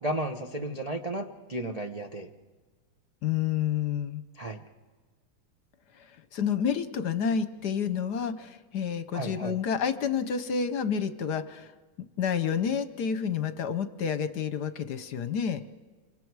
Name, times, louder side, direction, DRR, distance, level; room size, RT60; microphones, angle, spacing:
voice 1, 0.0-2.3 4.4-4.6 9.1-9.5, right 1 dB, 75° right, 2 dB, 0.3 m, -33 dB
voice 2, 3.2-4.2 5.9-11.7 12.2-15.6, left 7 dB, 60° left, 11 dB, 1.2 m, -29 dB
28.0 x 25.0 x 4.7 m, 1.3 s
omnidirectional pair, 2.4 m